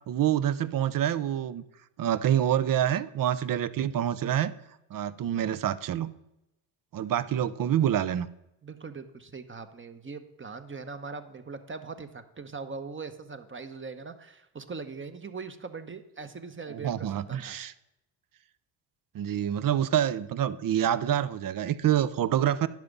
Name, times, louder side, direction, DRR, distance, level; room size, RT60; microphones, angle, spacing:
voice 1, 0.1-1.6 2.0-4.5 4.9-6.1 6.9-8.3 16.7-17.7 19.1-22.7, right 10 dB, 45° right, 15 dB, 0.6 m, -27 dB
voice 2, 8.6-17.6, right 4 dB, 25° right, 9 dB, 0.9 m, -41 dB
10.5 x 5.9 x 5.3 m, 0.89 s
supercardioid pair, 70°, 49 cm